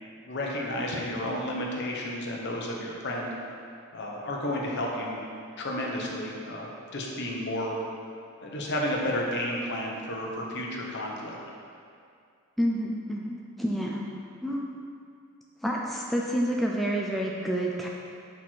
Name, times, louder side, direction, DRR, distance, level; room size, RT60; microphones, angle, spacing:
voice 1, 0.2-3.3 3.9-5.2 5.6-7.8 8.4-11.4, left 1 dB, 55° left, -2 dB, 1.1 m, -32 dB
voice 2, 12.6-14.0 14.4-14.7 15.6-17.9, equal, ahead, -2 dB, 0.4 m, -28 dB
8.3 x 4.4 x 4.6 m, 2.3 s
head